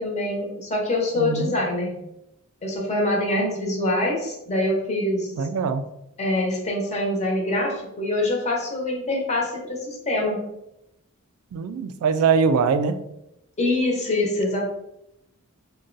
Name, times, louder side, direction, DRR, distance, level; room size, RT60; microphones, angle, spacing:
voice 1, 0.0-2.0 2.6-5.3 6.2-10.4 13.6-14.7, left 1 dB, 30° left, -1 dB, 0.8 m, -24 dB
voice 2, 1.2-1.5 5.4-5.9 11.5-13.0, right 5 dB, 80° right, 11 dB, 0.3 m, -22 dB
2.5 x 2.2 x 3.8 m, 0.84 s
head